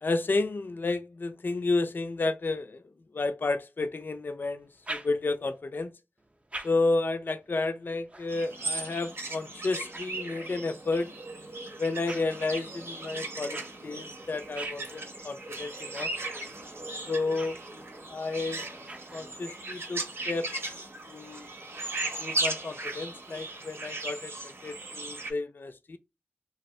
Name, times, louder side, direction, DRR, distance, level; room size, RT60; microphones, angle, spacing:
voice 1, 0.0-2.8 3.1-5.9 6.6-11.1 11.8-16.1 17.1-17.6 18.1-18.7 19.1-20.5 21.1-21.5 22.2-26.0, left 3 dB, 55° left, 0.3 m, -31 dB
sound 1, 4.6-5.6 6.2-10.8 11.4-19.7, right 2 dB, 30° right, 0.5 m, -47 dB
sound 2, 8.3-25.3, right 2 dB, 80° right, 0.8 m, -37 dB
2.6 x 2.4 x 3.1 m
wide cardioid pair, 65°, 4 cm